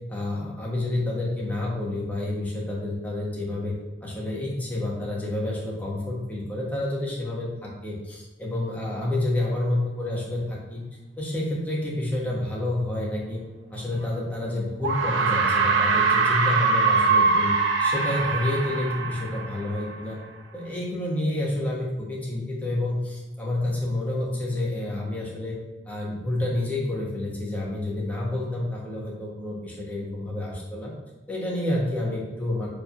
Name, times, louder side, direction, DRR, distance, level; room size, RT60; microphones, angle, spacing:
voice 1, 0.1-3.7 4.0-10.8 11.2-13.4 13.7-17.5 17.8-20.2 20.5-25.5 25.9-30.9 31.3-32.7, left 1 dB, 10° left, -5 dB, 1.5 m, -29 dB
sound 1, 14.0-14.1 14.8-20.0, right 4 dB, 85° right, 0.8 m, -23 dB
4.9 x 3.7 x 5.7 m, 1.1 s
head